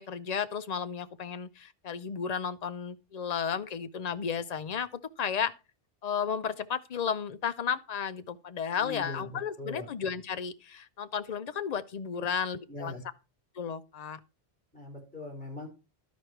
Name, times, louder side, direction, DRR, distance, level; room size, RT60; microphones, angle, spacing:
voice 1, 0.0-4.9 5.2-5.5 6.0-12.9 13.6-14.2, left 7 dB, 45° left, 0.6 m, -33 dB
voice 2, 8.8-9.9 12.1-12.2 12.7-13.0 14.7-15.7, left 2 dB, 5° left, 4.5 m, -41 dB
11.5 x 5.1 x 4.5 m
omnidirectional pair, 1.1 m